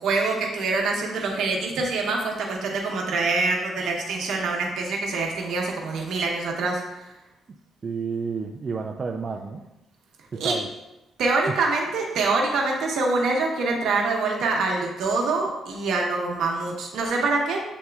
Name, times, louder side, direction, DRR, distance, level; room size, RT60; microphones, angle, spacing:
voice 1, 0.0-7.1 10.4-10.5 11.2-17.6, right 3 dB, 75° right, 0 dB, 0.9 m, -25 dB
voice 2, 7.8-9.6 10.3-10.7 11.5-11.6, right 5 dB, 40° right, 3 dB, 0.3 m, -30 dB
7.7 x 2.8 x 2.3 m, 0.95 s
cardioid pair, 90°, 0 cm